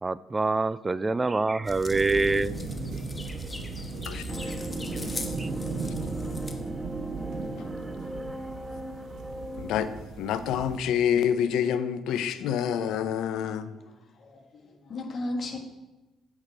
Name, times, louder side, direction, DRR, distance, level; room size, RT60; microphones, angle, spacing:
voice 1, 0.0-2.6 5.4-5.5, right 3 dB, 25° right, 0.3 m, -25 dB
sound 1, 1.6-6.6, left 2 dB, 20° left, 1.1 m, -39 dB
sound 2, 1.9-10.8, right 5 dB, 60° right, 0.9 m, -38 dB
voice 2, 4.1-4.5 9.6-9.9 10.2-13.7, left 9 dB, 70° left, 0.5 m, -27 dB
sound 3, 4.3-10.0, right 1 dB, 10° right, 1.0 m, -37 dB
voice 3, 13.6-15.6, left 2 dB, 50° left, 1.6 m, -36 dB
8.6 x 6.1 x 4.9 m
hypercardioid pair, 45°, 0 cm